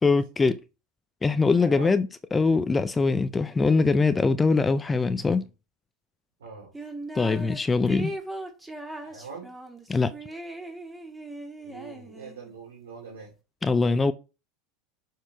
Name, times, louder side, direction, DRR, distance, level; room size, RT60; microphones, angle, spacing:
voice 1, 0.0-0.6 1.2-5.5 7.1-8.1 9.9-10.1 13.6-14.1, left 4 dB, 15° left, 0.5 m, -22 dB
voice 2, 1.6-2.0 6.4-6.7 9.0-9.5 11.6-13.3, right 5 dB, 85° right, 2.7 m, -42 dB
sound 1, 6.7-7.6 7.9-12.5, right 1 dB, 10° right, 1.9 m, -38 dB
7.1 x 4.6 x 4.5 m
hypercardioid pair, 100°, 0 cm